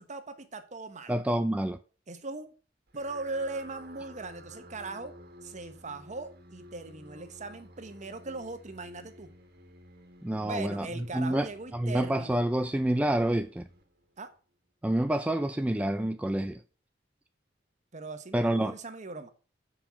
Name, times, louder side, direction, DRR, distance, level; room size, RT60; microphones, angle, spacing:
voice 1, 0.0-1.1 2.1-2.5 2.9-5.1 5.4-9.3 10.4-12.4 14.2-14.3 17.9-19.3, right 3 dB, 40° right, 1.0 m, -39 dB
voice 2, 1.1-1.8 10.2-11.5 11.7-13.7 14.8-16.6 18.3-18.7, right 1 dB, 5° right, 0.3 m, -28 dB
sound 1, 2.9-14.3, equal, 60° right, 1.5 m, -52 dB
7.2 x 5.4 x 5.6 m
head